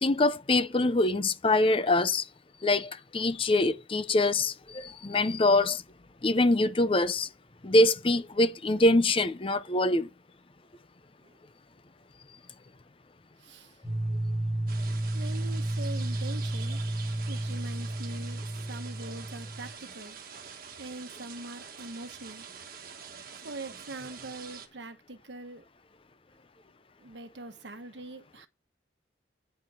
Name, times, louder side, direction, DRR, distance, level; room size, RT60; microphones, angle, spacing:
voice 1, 0.0-2.2 2.6-5.8 6.2-7.3 7.6-10.1, left 2 dB, 30° left, 0.6 m, -24 dB
voice 2, 13.4-13.8 15.1-16.8 17.3-20.2 20.8-22.5 23.4-25.6 27.0-28.5, right 2 dB, 75° right, 1.2 m, -43 dB
sound 1, 13.8-19.7, right 1 dB, ahead, 1.5 m, -32 dB
sound 2, 14.7-24.7, right 7 dB, 50° right, 1.4 m, -46 dB
9.2 x 5.4 x 7.1 m
head